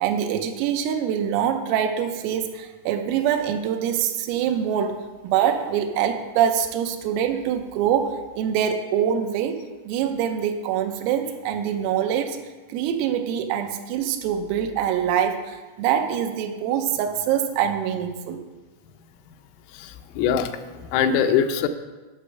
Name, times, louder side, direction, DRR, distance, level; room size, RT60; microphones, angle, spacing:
voice 1, 0.0-12.4 12.7-18.4, right 9 dB, 90° right, 5 dB, 3.5 m, -24 dB
voice 2, 19.7-21.7, left 8 dB, 90° left, 7 dB, 3.4 m, -23 dB
11.5 x 6.4 x 6.6 m, 1.3 s
omnidirectional pair, 5.8 m